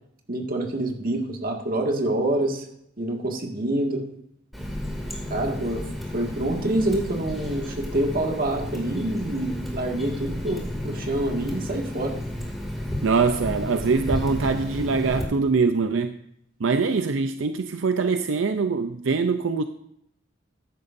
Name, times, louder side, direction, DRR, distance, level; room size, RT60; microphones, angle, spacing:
voice 1, 0.3-2.7 3.0-4.0 5.3-5.8 6.1-12.2, right 1 dB, 50° right, 2.0 m, -26 dB
Water tap faucet, 4.5-15.2, left 1 dB, ahead, 2.5 m, -32 dB
voice 2, 13.0-16.2 16.6-19.6, right 4 dB, 80° right, 0.5 m, -23 dB
14.0 x 10.5 x 2.6 m
head